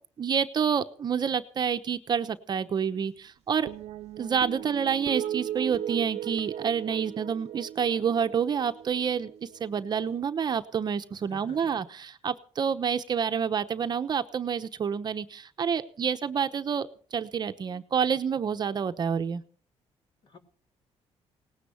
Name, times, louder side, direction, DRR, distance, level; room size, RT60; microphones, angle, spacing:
voice 1, 0.2-3.7 4.2-9.3 9.6-19.4, right 7 dB, 40° right, 9 dB, 0.9 m, -28 dB
sound 1, 3.7-10.2, right 11 dB, 70° right, 0.8 m, -37 dB
voice 2, 11.3-11.8 20.2-20.4, left 3 dB, 45° left, 5 dB, 3.1 m, -49 dB
18.5 x 10.0 x 7.1 m, 0.44 s
cardioid pair, 140°, 11 cm